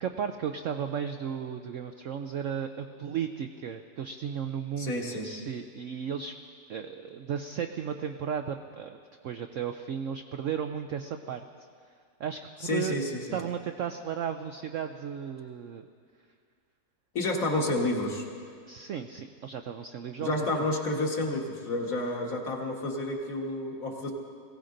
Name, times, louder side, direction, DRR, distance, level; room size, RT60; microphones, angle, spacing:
voice 1, 0.0-6.3 6.7-9.0 9.2-11.4 12.2-13.0 13.3-15.9 18.7-20.7, right 8 dB, 70° right, 6 dB, 0.7 m, -35 dB
voice 2, 4.8-5.3 12.6-13.2 17.1-18.3 20.2-24.1, left 2 dB, 50° left, 0 dB, 2.0 m, -30 dB
21.5 x 16.5 x 3.9 m, 2.2 s
omnidirectional pair, 1.9 m